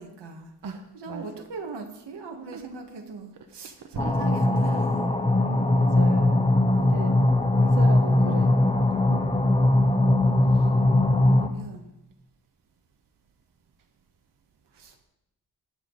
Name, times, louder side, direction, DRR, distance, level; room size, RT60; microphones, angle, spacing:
voice 1, 0.0-0.5 0.9-5.2 6.7-7.1 11.3-11.9 14.7-15.0, right 4 dB, 90° right, 3 dB, 1.8 m, -40 dB
sound 1, 4.0-11.5, left 2 dB, 15° left, 0.8 m, -20 dB
voice 2, 5.5-7.2 7.6-8.6 10.5-10.6, right 5 dB, 55° right, 4 dB, 1.1 m, -37 dB
20.0 x 7.0 x 4.1 m, 0.88 s
wide cardioid pair, 160°, 40 cm